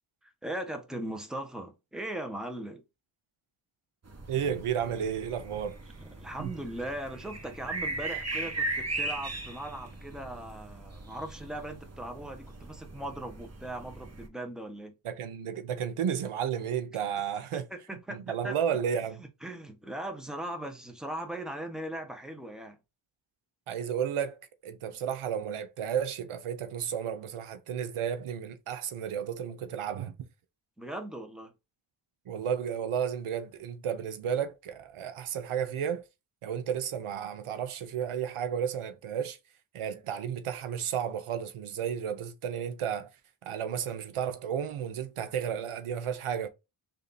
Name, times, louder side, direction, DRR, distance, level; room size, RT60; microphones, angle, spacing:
voice 1, 0.2-2.8 6.0-14.9 17.5-18.6 19.2-22.8 30.8-31.5, right 1 dB, ahead, 0.9 m, -39 dB
sound 1, 4.0-14.3, right 2 dB, 30° right, 0.9 m, -38 dB
voice 2, 4.3-5.8 6.4-6.5 15.0-17.7 18.1-19.2 23.7-24.4 24.6-30.1 32.3-36.0 36.4-39.4 39.7-43.1 43.4-46.5, right 8 dB, 85° right, 0.7 m, -32 dB
3.3 x 2.7 x 3.9 m
cardioid pair, 70°, 49 cm